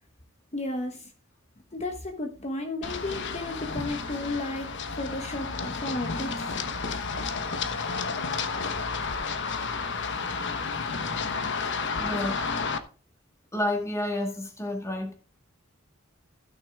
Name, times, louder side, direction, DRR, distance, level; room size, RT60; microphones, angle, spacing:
voice 1, 0.5-1.1 1.7-6.5, left 2 dB, 30° left, 1.2 m, -33 dB
Run, 2.8-12.8, left 4 dB, 60° left, 1.2 m, -31 dB
Wind instrument woodwind instrument, 6.6-12.0, right 4 dB, 75° left, 6.1 m, -54 dB
voice 2, 12.0-12.4 13.5-15.1, left 1 dB, 15° left, 2.1 m, -30 dB
15.5 x 6.3 x 3.6 m
head